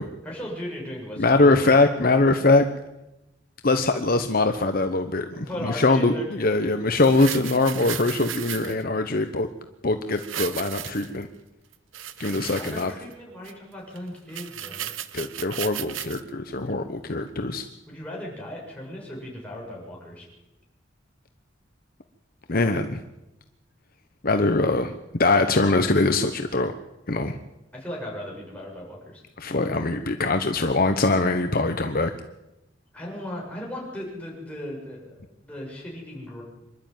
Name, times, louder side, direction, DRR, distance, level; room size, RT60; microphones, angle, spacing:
voice 1, 0.2-2.1 5.5-6.7 12.4-14.9 17.9-20.2 27.7-29.2 32.9-35.1 35.4-36.4, left 1 dB, 5° left, -3 dB, 7.2 m, -37 dB
voice 2, 1.2-2.6 3.6-9.5 9.8-11.3 12.2-12.9 15.1-17.7 22.5-23.0 24.2-26.7 27.1-27.4 29.4-32.1, left 2 dB, 50° left, 7 dB, 1.0 m, -22 dB
sound 1, 6.9-8.8 10.1-11.2 11.7-13.1 13.4-13.5 14.0-14.1 14.3-16.2 16.7-16.8, right 11 dB, 85° right, 1.0 m, -35 dB
25.5 x 12.0 x 9.2 m, 0.96 s
head